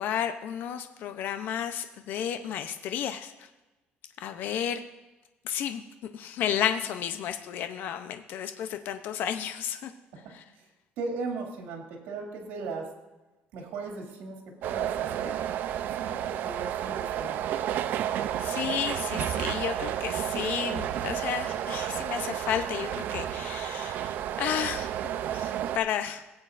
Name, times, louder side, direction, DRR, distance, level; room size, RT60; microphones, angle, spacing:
voice 1, 0.0-3.5 4.2-4.8 5.4-5.8 6.1-9.9 10.3-10.4 18.1-26.2, left 9 dB, 60° left, 8 dB, 0.6 m, -32 dB
voice 2, 11.0-12.9 13.5-15.4 16.0-17.4, right 4 dB, 85° right, 1 dB, 2.4 m, -37 dB
sound 1, 14.6-25.8, right 11 dB, 60° right, 0.5 m, -31 dB
17.5 x 8.7 x 2.5 m, 1.1 s
cardioid pair, 160°, 4 cm